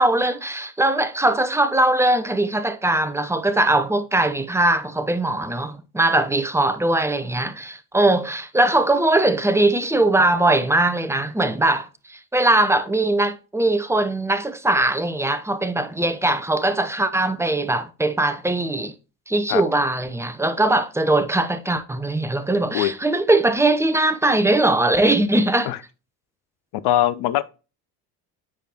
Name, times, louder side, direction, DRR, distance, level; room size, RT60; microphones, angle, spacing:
voice 1, 0.0-18.9 19.3-25.7, right 2 dB, 5° right, 0.7 m, -20 dB
voice 2, 26.8-27.4, left 13 dB, 55° left, 0.7 m, -21 dB
8.4 x 5.0 x 3.0 m
hypercardioid pair, 60°, 45 cm